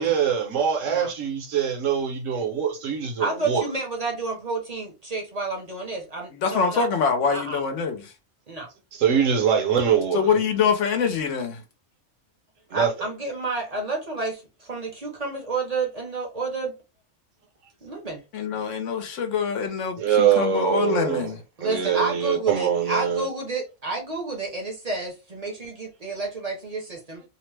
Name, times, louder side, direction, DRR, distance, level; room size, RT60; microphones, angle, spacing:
voice 1, 0.0-3.6 8.9-10.3 12.7-12.9 20.0-21.3 21.6-23.3, right 8 dB, 75° right, 1.1 m, -23 dB
voice 2, 3.2-6.9 7.3-7.6 8.5-8.7 12.7-16.7 17.8-18.2 21.6-27.2, right 3 dB, 40° right, 0.7 m, -30 dB
voice 3, 6.3-8.1 10.1-11.6 18.3-21.4, left 6 dB, 70° left, 1.0 m, -25 dB
2.8 x 2.0 x 3.2 m
omnidirectional pair, 1.4 m